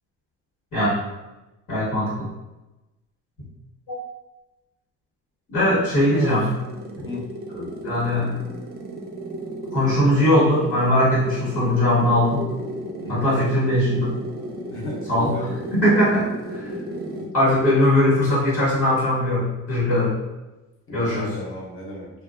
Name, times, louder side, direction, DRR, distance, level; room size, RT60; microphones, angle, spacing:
voice 1, 1.7-2.1 3.9-4.0 5.5-6.4 7.5-8.2 9.7-12.4 13.1-14.1 15.1-15.3 15.7-16.7 17.3-20.2 20.9-21.3, left 1 dB, 65° left, -8 dB, 1.3 m, -20 dB
sound 1, 5.7-17.4, right 1 dB, 30° right, 0.4 m, -34 dB
voice 2, 6.1-6.5 7.0-7.2 13.0-13.5 14.7-15.5 20.9-22.1, left 2 dB, 40° left, -2 dB, 0.7 m, -33 dB
2.7 x 2.3 x 2.3 m, 1.0 s
cardioid pair, 110°, 32 cm